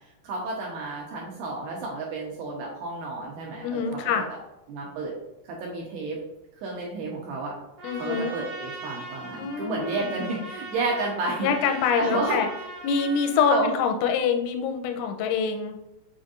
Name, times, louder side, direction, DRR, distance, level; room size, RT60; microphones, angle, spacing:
voice 1, 0.2-4.4 4.7-5.1 5.5-6.2 6.6-7.5 8.0-11.5 12.0-12.4 13.5-13.7, right 3 dB, 80° right, -3 dB, 2.3 m, -31 dB
voice 2, 3.6-4.3 7.8-8.4 9.4-10.1 11.4-12.5 12.8-15.8, left 6 dB, 85° left, 5 dB, 2.9 m, -25 dB
Trumpet, 7.8-13.6, right 3 dB, 45° right, 1.4 m, -39 dB
7.3 x 5.1 x 2.6 m, 0.94 s
omnidirectional pair, 5.7 m